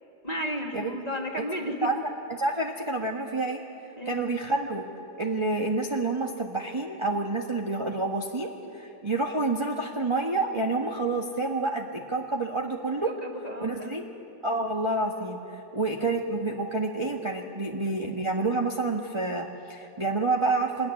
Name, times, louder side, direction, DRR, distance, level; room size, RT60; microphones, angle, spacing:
voice 1, 0.2-1.9 4.0-4.2 13.0-14.0, equal, 20° left, 0 dB, 2.6 m, -33 dB
voice 2, 2.4-3.6 4.0-4.8 5.2-13.1 13.6-14.1 14.4-20.9, right 3 dB, 15° right, 0 dB, 1.3 m, -28 dB
25.5 x 21.0 x 9.7 m, 2.7 s
omnidirectional pair, 2.0 m